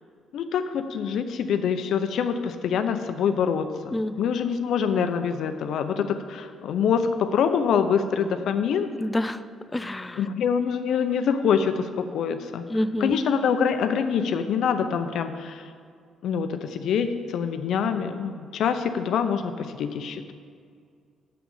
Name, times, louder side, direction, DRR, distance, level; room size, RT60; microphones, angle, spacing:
voice 1, 0.3-8.9 10.1-12.6 13.0-15.7 16.2-20.3, left 7 dB, 75° left, 8 dB, 0.7 m, -25 dB
voice 2, 9.0-9.4 9.7-10.2 12.7-13.1, left 1 dB, 15° left, 12 dB, 0.4 m, -27 dB
7.0 x 6.1 x 7.2 m, 2.1 s
cardioid pair, 90°, 0 cm